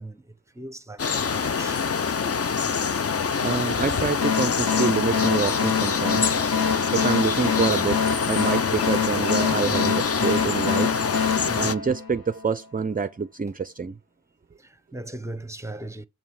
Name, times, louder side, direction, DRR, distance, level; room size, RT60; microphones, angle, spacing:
voice 1, 0.0-1.9 11.3-11.8 14.6-16.0, right 2 dB, 10° right, 0.8 m, -39 dB
sound 1, 1.0-11.8, left 6 dB, 40° left, 0.6 m, -25 dB
voice 2, 3.4-6.3 6.9-10.9 11.6-14.0, right 5 dB, 25° right, 0.4 m, -27 dB
sound 2, 4.2-12.5, left 6 dB, 70° left, 1.0 m, -26 dB
7.9 x 5.4 x 4.8 m
wide cardioid pair, 75°, 38 cm